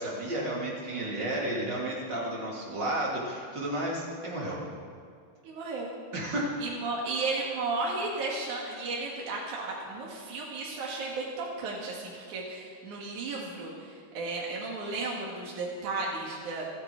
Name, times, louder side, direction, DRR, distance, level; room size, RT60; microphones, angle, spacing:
voice 1, 0.0-4.6 6.1-6.6, right 1 dB, 35° right, -4 dB, 3.6 m, -32 dB
voice 2, 5.4-5.9 6.6-16.7, right 3 dB, 75° right, -3 dB, 3.3 m, -34 dB
27.5 x 10.0 x 4.8 m, 2.1 s
omnidirectional pair, 3.6 m